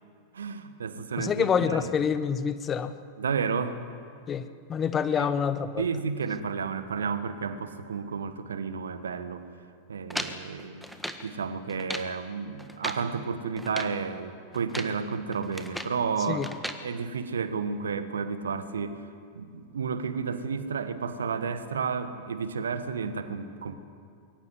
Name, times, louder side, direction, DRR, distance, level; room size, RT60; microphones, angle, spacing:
voice 1, 0.3-1.9 3.2-3.8 5.2-5.3 5.8-9.5 9.9-10.8 11.2-16.4 16.8-19.1 19.3-23.8, right 5 dB, 70° right, 11 dB, 1.5 m, -32 dB
voice 2, 1.2-2.9 4.3-5.8 16.3-16.5, left 7 dB, 25° left, 12 dB, 1.1 m, -27 dB
sound 1, 10.1-11.3 11.7-12.1 12.6-13.1 13.6-14.0 14.5-15.0 15.3-16.0 16.4-16.8, equal, ahead, 1.5 m, -37 dB
22.0 x 17.0 x 9.7 m, 2.3 s
figure-of-eight pair, 90°, 0 cm